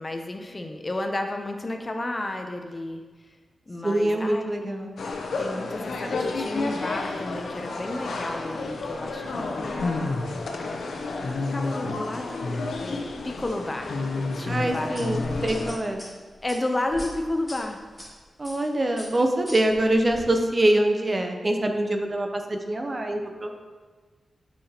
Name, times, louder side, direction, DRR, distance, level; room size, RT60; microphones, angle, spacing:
voice 1, 0.0-3.0 3.7-4.9 5.4-10.4 11.1-11.2 11.5-14.0 14.4-15.4 16.4-17.8, left 1 dB, 25° left, 4 dB, 0.5 m, -32 dB
voice 2, 3.8-5.0 14.4-16.1 18.4-23.6, right 1 dB, 30° right, 4 dB, 0.6 m, -24 dB
sound 1, 5.0-15.8, left 3 dB, 80° left, 0.7 m, -30 dB
sound 2, 14.9-18.1 18.4-18.7 19.0-20.2, equal, ahead, 2.0 m, -41 dB
8.6 x 5.7 x 2.9 m, 1.4 s
wide cardioid pair, 125°, 0 cm